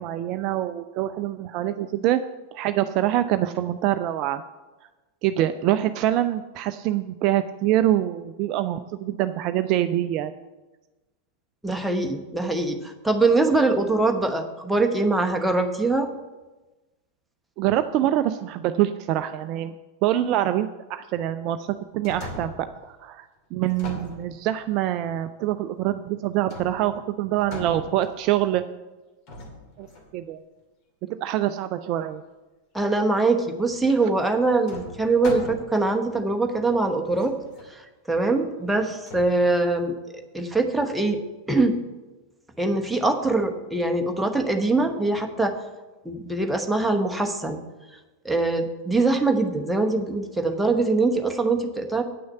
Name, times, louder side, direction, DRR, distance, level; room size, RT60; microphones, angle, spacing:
voice 1, 0.0-2.2 2.5-4.4 5.2-10.3 17.6-19.7 20.0-28.6 29.8-29.9 30.1-30.4 31.2-32.2, right 13 dB, 40° right, 10 dB, 0.4 m, -25 dB
voice 2, 11.6-16.1 32.7-37.3 37.7-39.9 40.3-41.2 41.5-41.8 42.6-45.5 46.0-47.6 48.2-52.0, right 3 dB, 5° right, 3 dB, 1.1 m, -23 dB
sound 1, 21.7-22.8 23.6-24.8 26.5-27.0 27.4-28.4 29.3-30.2 33.7-33.8 34.7-35.9 36.6-36.7 37.1-37.7 39.1-39.3, left 1 dB, 40° left, 2.5 m, -39 dB
8.7 x 6.3 x 8.0 m, 1.1 s
figure-of-eight pair, 90°, 0 cm